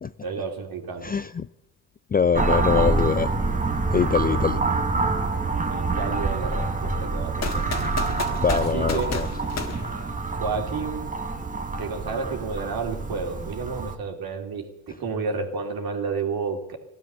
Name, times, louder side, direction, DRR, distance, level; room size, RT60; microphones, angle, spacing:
voice 1, 0.2-1.1 5.7-7.6 8.5-9.1 10.3-11.1 11.8-16.8, right 5 dB, 55° right, 2 dB, 3.1 m, -31 dB
voice 2, 1.0-1.5 2.1-3.3 3.9-4.6 8.4-9.3, left 6 dB, 20° left, 14 dB, 0.5 m, -23 dB
sound 1, 2.3-13.9, right 3 dB, 20° right, 1.8 m, -26 dB
sound 2, 7.4-10.6, left 5 dB, 35° left, 1.8 m, -33 dB
16.5 x 12.5 x 6.9 m, 0.90 s
hypercardioid pair, 60°, 43 cm